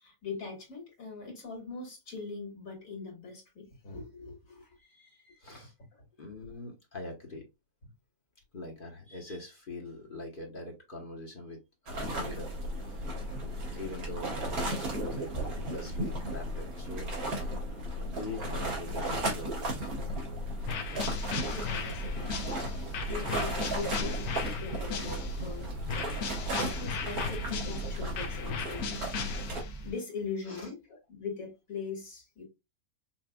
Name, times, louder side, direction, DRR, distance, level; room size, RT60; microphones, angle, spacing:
voice 1, 0.0-4.7 21.4-24.2 24.6-25.8 26.8-28.9 29.8-30.8 31.1-32.4, left 5 dB, 65° left, 2.3 m, -41 dB
voice 2, 4.8-5.7 6.2-7.4 8.5-11.6 11.9-13.1 13.5-17.6 18.0-19.9 22.7-22.8 30.4-30.7, left 2 dB, 40° left, 1.1 m, -43 dB
sound 1, 11.9-29.6, right 1 dB, 80° right, 1.9 m, -35 dB
sound 2, 20.7-25.5 25.9-29.9, left 6 dB, 85° left, 1.3 m, -37 dB
sound 3, 21.0-29.9, right 3 dB, 45° right, 1.0 m, -46 dB
5.8 x 2.5 x 2.2 m
omnidirectional pair, 1.5 m